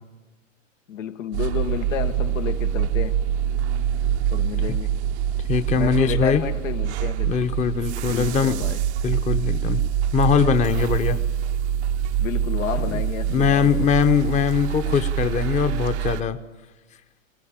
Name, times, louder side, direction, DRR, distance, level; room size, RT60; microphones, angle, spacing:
voice 1, 0.9-3.2 4.3-5.0 5.7-7.3 8.1-8.8 12.2-13.9, left 9 dB, 80° left, 1.4 m, -31 dB
sound 1, 1.3-16.2, right 9 dB, 60° right, 0.7 m, -25 dB
voice 2, 5.5-6.4 7.2-8.5 9.0-9.8 10.1-11.2 12.9-13.0 13.3-16.4, left 7 dB, 20° left, 0.9 m, -21 dB
21.5 x 21.0 x 8.8 m
hypercardioid pair, 130°, 38 cm